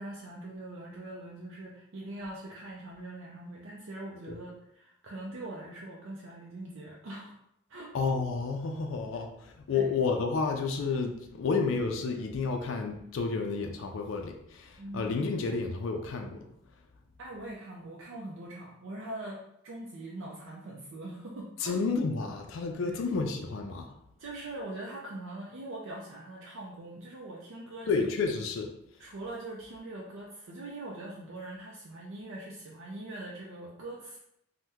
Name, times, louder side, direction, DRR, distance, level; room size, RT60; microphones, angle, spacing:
voice 1, 0.0-7.3 7.7-7.9 9.7-9.9 14.8-15.1 17.2-21.8 22.8-23.0 24.2-28.1 29.0-34.2, right 2 dB, 80° right, -3 dB, 0.4 m, -42 dB
voice 2, 7.9-16.5 21.6-24.0 27.9-28.7, left 4 dB, 85° left, 3 dB, 0.4 m, -31 dB
2.8 x 2.1 x 3.4 m, 0.76 s
head